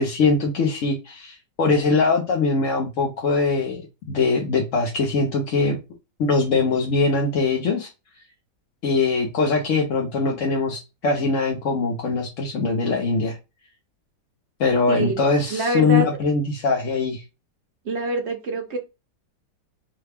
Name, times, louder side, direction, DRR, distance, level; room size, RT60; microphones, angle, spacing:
voice 1, 0.0-5.8 6.2-7.9 8.8-13.4 14.6-17.2, left 4 dB, 55° left, 0 dB, 1.0 m, -22 dB
voice 2, 15.5-16.1 17.8-18.8, right 2 dB, 55° right, 4 dB, 0.7 m, -25 dB
5.6 x 2.3 x 3.4 m, 0.26 s
omnidirectional pair, 1.9 m